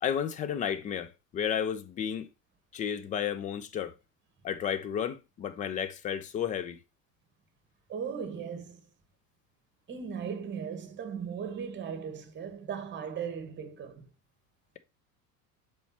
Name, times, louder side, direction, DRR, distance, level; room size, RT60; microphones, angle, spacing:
voice 1, 0.0-2.3 2.7-3.9 4.4-6.8, left 8 dB, 20° left, 0.4 m, -32 dB
voice 2, 7.9-8.8 9.9-14.1, right 7 dB, 25° right, 1.3 m, -37 dB
7.0 x 4.8 x 2.8 m
figure-of-eight pair, 80°, 47 cm